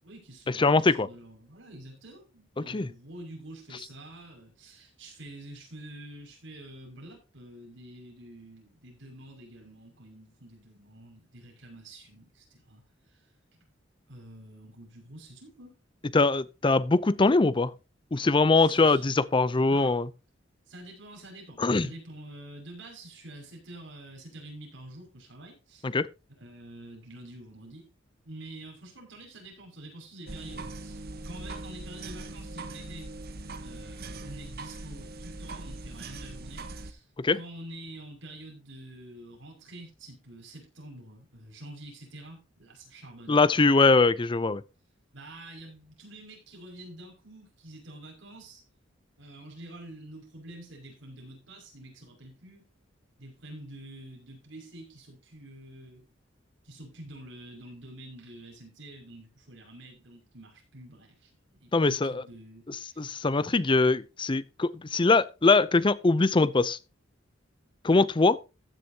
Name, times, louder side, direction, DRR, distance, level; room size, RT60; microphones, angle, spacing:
voice 1, 0.0-13.3 14.1-15.7 18.6-19.0 19.5-20.0 20.7-25.9 26.4-27.9 28.2-33.1 33.6-37.1 37.3-43.4 45.1-48.6 49.2-52.7 53.2-56.1 56.6-63.1 63.5-63.8, right 1 dB, 70° right, 6.0 m, -47 dB
voice 2, 0.6-1.1 2.7-2.9 16.1-17.7 18.1-20.1 21.6-21.9 25.8-26.1 37.2-37.4 43.3-44.6 61.7-62.2 63.0-66.8 67.8-68.4, left 3 dB, 25° left, 0.5 m, -22 dB
sound 1, 30.3-36.9, right 2 dB, 50° right, 1.1 m, -41 dB
15.0 x 9.8 x 2.8 m
head